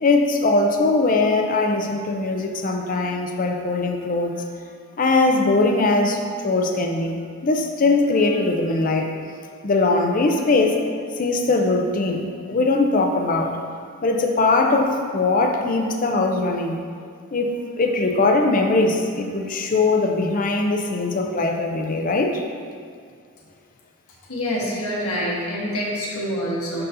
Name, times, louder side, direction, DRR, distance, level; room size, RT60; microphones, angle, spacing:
voice 1, 0.0-4.4 5.0-9.1 9.6-10.8 11.1-13.6 14.0-16.8 17.3-22.4, left 3 dB, 35° left, 3 dB, 0.5 m, -21 dB
voice 2, 24.3-26.9, equal, 75° left, -5 dB, 1.5 m, -26 dB
11.0 x 4.0 x 2.7 m, 2.1 s
head